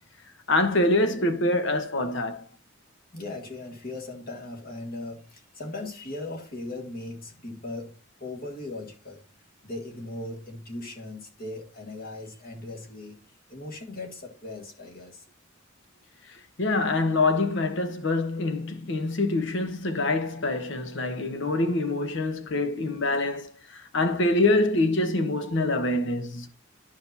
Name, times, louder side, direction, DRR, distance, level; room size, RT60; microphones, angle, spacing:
voice 1, 0.5-2.5 16.6-26.5, left 2 dB, 60° left, 1.0 m, -25 dB
voice 2, 3.1-9.2 9.6-15.2, left 2 dB, 45° left, 1.7 m, -38 dB
11.5 x 5.1 x 2.7 m
head